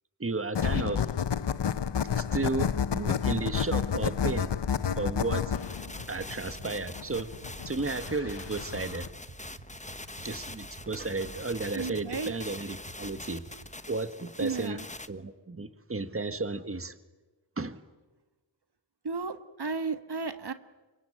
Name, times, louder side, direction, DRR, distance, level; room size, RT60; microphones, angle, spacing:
voice 1, 0.2-1.0 2.1-4.5 5.0-5.5 6.1-7.3 7.6-9.1 10.2-13.4 13.9-14.8 15.1-16.9 17.6-17.8, right 3 dB, 30° right, 11 dB, 1.6 m, -33 dB
sound 1, 0.5-9.1, left 7 dB, 70° left, 0.9 m, -30 dB
sound 2, 4.1-13.8, right 3 dB, 85° right, 5.0 m, -49 dB
sound 3, 5.5-15.1, left 2 dB, 15° left, 1.2 m, -44 dB
voice 2, 11.7-12.3 14.4-14.8 19.0-20.5, right 4 dB, 65° right, 10 dB, 1.6 m, -33 dB
26.0 x 23.5 x 8.9 m, 1.2 s
wide cardioid pair, 60°, 43 cm